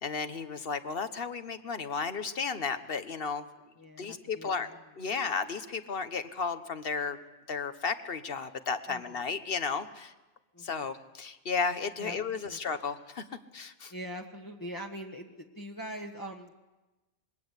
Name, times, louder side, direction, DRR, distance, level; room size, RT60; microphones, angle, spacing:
voice 1, 0.0-3.4 4.0-4.7 5.0-7.2 7.5-10.1 10.6-13.2 13.5-13.9, left 5 dB, 55° left, 10 dB, 1.4 m, -33 dB
voice 2, 3.8-4.8 8.9-9.2 10.5-10.9 12.0-12.6 13.9-16.5, equal, 15° left, 1 dB, 1.4 m, -43 dB
26.0 x 21.5 x 8.3 m, 1.1 s
omnidirectional pair, 1.2 m